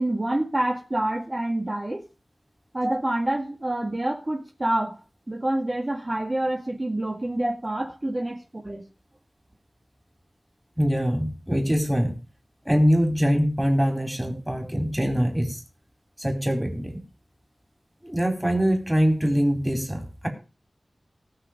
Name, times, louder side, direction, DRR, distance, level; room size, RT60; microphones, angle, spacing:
voice 1, 0.0-2.0 2.7-5.0 5.3-8.4 8.6-8.8, right 1 dB, 35° right, 0 dB, 2.0 m, -27 dB
voice 2, 10.8-12.2 12.7-15.6 16.2-17.0 18.0-20.3, equal, 10° right, 3 dB, 4.2 m, -23 dB
19.0 x 6.5 x 5.2 m, 0.32 s
wide cardioid pair, 75°, 0 cm